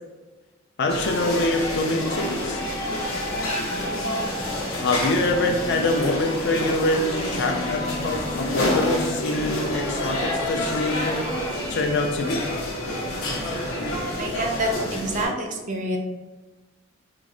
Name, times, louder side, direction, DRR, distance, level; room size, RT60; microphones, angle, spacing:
voice 1, 0.8-2.6 4.8-11.3 11.7-12.5, left 2 dB, 55° left, 4 dB, 0.4 m, -25 dB
sound 1, 0.9-15.3, left 1 dB, 70° left, 0.7 m, -29 dB
sound 2, 1.5-14.4, left 1 dB, 30° left, 0.7 m, -34 dB
voice 2, 14.2-16.0, right 1 dB, 35° right, 2 dB, 0.3 m, -27 dB
3.9 x 2.0 x 2.4 m, 1.2 s
head